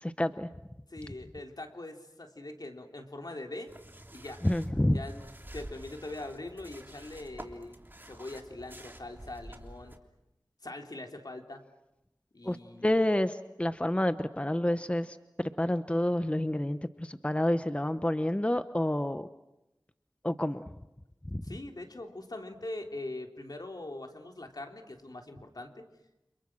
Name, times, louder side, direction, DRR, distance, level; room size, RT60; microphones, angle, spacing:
voice 1, 0.0-0.5 4.4-5.0 12.4-12.6 12.8-19.3 20.2-20.7 21.3-21.4, left 1 dB, 15° left, 11 dB, 0.9 m, -29 dB
voice 2, 0.9-3.7 4.1-4.4 4.9-5.2 5.5-7.8 8.1-9.9 10.6-11.6 12.3-13.0 21.4-25.8, left 2 dB, 65° left, 3 dB, 3.4 m, -42 dB
sound 1, 3.7-10.0, right 1 dB, 30° right, 3.1 m, -49 dB
30.0 x 27.5 x 6.2 m, 0.92 s
wide cardioid pair, 50°, 7 cm